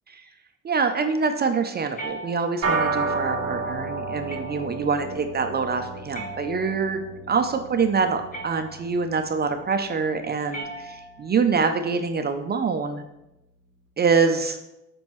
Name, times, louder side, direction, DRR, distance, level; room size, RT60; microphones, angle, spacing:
voice 1, 0.6-13.0 14.0-14.6, right 5 dB, 30° right, 6 dB, 0.4 m, -25 dB
sound 1, 1.9-2.8 4.3-4.9 6.1-7.0 8.3-9.0 10.5-11.4, right 2 dB, 25° left, 1.0 m, -39 dB
sound 2, 2.6-12.2, right 3 dB, 50° right, 1.1 m, -32 dB
7.6 x 5.2 x 3.0 m, 0.93 s
cardioid pair, 140°, 32 cm